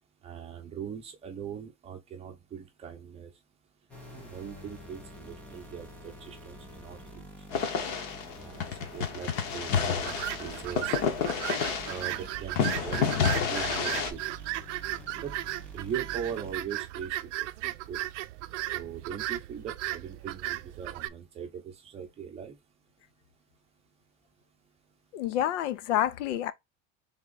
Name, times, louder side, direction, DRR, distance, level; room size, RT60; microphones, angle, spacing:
voice 1, 0.2-3.3 4.1-7.3 8.4-8.6 8.9-11.0 11.9-14.2 15.2-15.3 15.7-18.0 18.7-22.5, right 8 dB, 15° right, 0.7 m, -40 dB
sound 1, 3.9-16.5, equal, 5° left, 0.4 m, -48 dB
sound 2, 7.5-12.2 12.6-14.1, left 7 dB, 40° left, 0.9 m, -29 dB
sound 3, 10.0-21.1, right 16 dB, 70° right, 0.6 m, -36 dB
voice 2, 25.1-26.5, left 11 dB, 70° left, 0.6 m, -28 dB
3.7 x 3.5 x 3.9 m
supercardioid pair, 175°, 38 cm